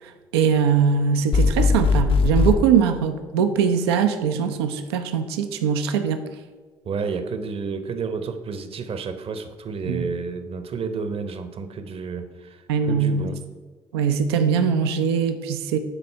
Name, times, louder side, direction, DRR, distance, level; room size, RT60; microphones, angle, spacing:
voice 1, 0.0-6.2 9.8-10.1 12.7-13.3 13.9-15.8, right 6 dB, 80° right, 8 dB, 0.5 m, -22 dB
sound 1, 1.3-2.6, left 4 dB, 45° left, 0.6 m, -19 dB
voice 2, 6.8-13.4, right 5 dB, 45° right, 10 dB, 0.9 m, -31 dB
10.0 x 4.2 x 5.5 m, 1.4 s
hypercardioid pair, 50°, 13 cm